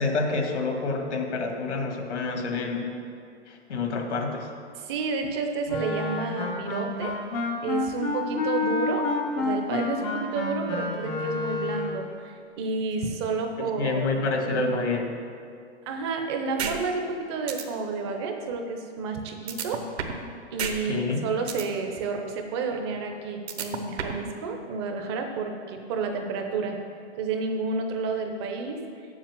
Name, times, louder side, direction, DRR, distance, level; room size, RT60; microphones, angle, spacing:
voice 1, 0.0-2.9 3.5-4.5 13.6-15.1 20.8-21.3, left 3 dB, 75° left, 3 dB, 1.9 m, -28 dB
voice 2, 4.7-7.2 7.6-9.1 9.4-14.6 15.9-19.9 20.5-26.8 27.2-28.8, right 4 dB, 25° right, 4 dB, 0.7 m, -30 dB
Wind instrument woodwind instrument, 5.7-12.1, left 3 dB, 10° left, 0.5 m, -29 dB
sound 1, 16.6-16.7 17.1-17.2 17.5-17.6 19.5-20.2 20.6-20.7 21.1-21.6 23.5-24.2, right 7 dB, 65° right, 1.2 m, -30 dB
7.4 x 6.7 x 7.4 m, 2.3 s
hypercardioid pair, 155°, 35 cm